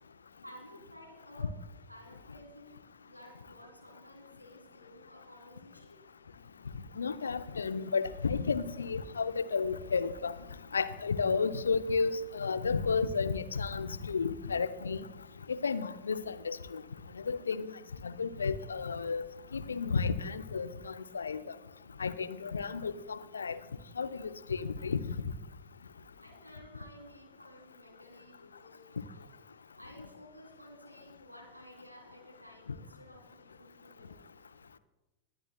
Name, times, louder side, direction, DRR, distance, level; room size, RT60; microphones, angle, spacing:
voice 1, 0.4-1.6 1.9-6.0 24.1-24.2 26.2-29.4 29.8-34.3, equal, 90° right, 1 dB, 2.8 m, -54 dB
voice 2, 7.0-10.3 10.7-15.1 15.5-16.8 17.3-17.7 18.0-19.3 19.5-21.4 22.0-23.6 24.0-25.0, left 5 dB, 75° left, 13 dB, 0.5 m, -32 dB
21.0 x 10.0 x 2.3 m, 1.0 s
figure-of-eight pair, 90°, 0 cm